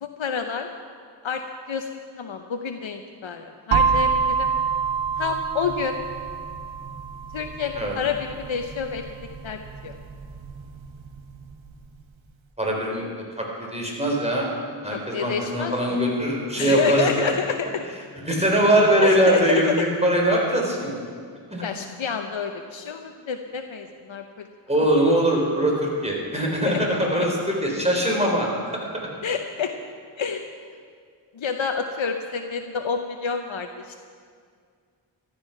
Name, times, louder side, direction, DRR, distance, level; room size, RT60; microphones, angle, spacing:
voice 1, 0.0-0.7 1.2-1.9 2.2-4.5 5.2-6.0 7.3-9.1 9.4-10.0 14.9-16.0 16.6-17.8 19.0-19.6 21.6-24.5 26.6-26.9 27.2-27.3 29.2-29.7 30.2-30.5 31.3-34.1, left 6 dB, 85° left, 5 dB, 0.8 m, -29 dB
sound 1, 3.7-11.5, right 6 dB, 85° right, 1.1 m, -27 dB
voice 2, 12.6-13.1 13.4-14.5 14.8-17.3 18.2-21.0 21.5-21.6 24.7-28.5, right 1 dB, 15° right, -2 dB, 4.0 m, -22 dB
14.5 x 12.5 x 5.9 m, 2.1 s
wide cardioid pair, 50°, 46 cm